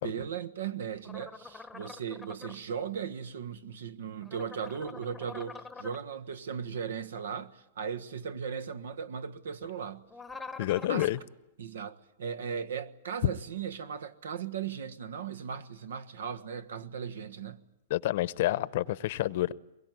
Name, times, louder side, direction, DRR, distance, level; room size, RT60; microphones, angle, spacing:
voice 1, 0.0-10.1 10.9-11.1 11.6-17.6, right 7 dB, 85° right, 1.4 m, -37 dB
sound 1, 1.0-2.6 4.2-6.0 10.1-11.2, left 4 dB, 5° left, 1.0 m, -45 dB
voice 2, 10.6-11.2 17.9-19.5, left 15 dB, 55° left, 0.8 m, -29 dB
23.0 x 22.0 x 9.3 m
hypercardioid pair, 155°, 0 cm